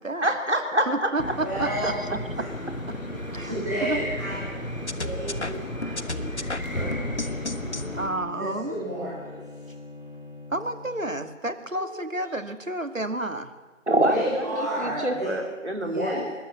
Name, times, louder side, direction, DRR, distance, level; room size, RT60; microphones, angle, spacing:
voice 1, 0.2-1.3 13.9-16.3, right 1 dB, 60° right, 4 dB, 3.9 m, -26 dB
voice 2, 0.9-1.2 1.6-2.2 2.9-3.0 3.3-3.5 3.8-4.0 8.0-9.1 10.5-13.5, right 2 dB, 75° right, 9 dB, 2.3 m, -30 dB
sound 1, 1.2-8.1, left 1 dB, 90° left, 5.3 m, -33 dB
voice 3, 1.4-1.9 2.4-2.5 3.4-4.4 4.7-7.6 8.3-9.7 11.7-11.9 14.1-15.3 15.8-16.2, right 1 dB, 15° right, -8 dB, 6.5 m, -33 dB
sound 2, 4.9-7.9, left 2 dB, 60° left, 1.5 m, -33 dB
Bowed string instrument, 6.7-11.3, left 4 dB, 40° left, 4.8 m, -42 dB
25.5 x 21.0 x 7.1 m, 1.3 s
figure-of-eight pair, 175°, 40 cm